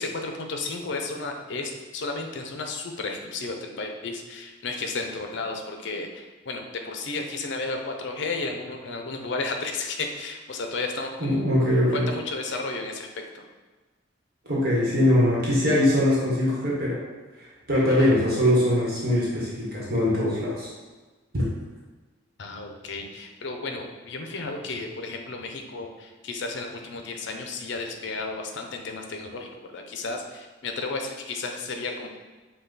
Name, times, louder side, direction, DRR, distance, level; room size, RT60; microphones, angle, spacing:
voice 1, 0.0-11.6 11.9-13.4 22.4-32.1, left 3 dB, 65° left, 3 dB, 0.5 m, -33 dB
voice 2, 11.2-12.1 14.5-17.0 17.7-20.7 21.3-21.4, left 1 dB, 50° right, -6 dB, 1.1 m, -22 dB
5.5 x 2.2 x 3.9 m, 1.3 s
head